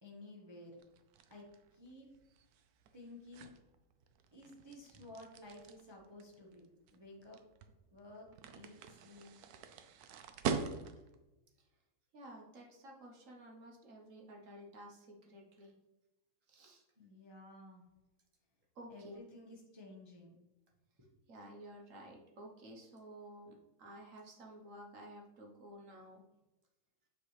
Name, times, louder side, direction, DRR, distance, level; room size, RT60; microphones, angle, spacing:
voice 1, 0.0-0.8 1.3-1.5 1.7-2.1 2.9-3.5 4.3-6.7 6.9-7.4 7.9-9.3 10.4-10.8 17.0-17.8 18.9-20.4, left 1 dB, 30° right, -2 dB, 0.5 m, -54 dB
sound 1, 0.8-11.2, right 6 dB, 85° right, 0.8 m, -44 dB
voice 2, 12.1-15.8 16.5-16.8 18.7-19.2 21.3-26.2, right 1 dB, 50° right, 0 dB, 1.1 m, -53 dB
6.3 x 5.2 x 3.2 m, 1.0 s
omnidirectional pair, 2.2 m